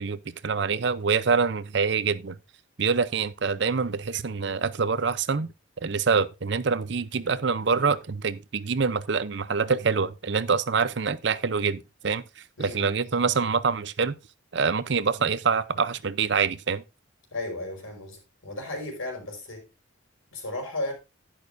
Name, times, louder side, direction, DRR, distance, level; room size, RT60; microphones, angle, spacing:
voice 1, 0.0-2.4 2.8-5.5 5.8-12.2 12.6-14.1 14.5-16.8, right 5 dB, 60° right, 0.6 m, -25 dB
voice 2, 17.3-19.7 20.3-20.9, left 2 dB, 90° left, 4.8 m, -34 dB
11.0 x 10.5 x 2.6 m
head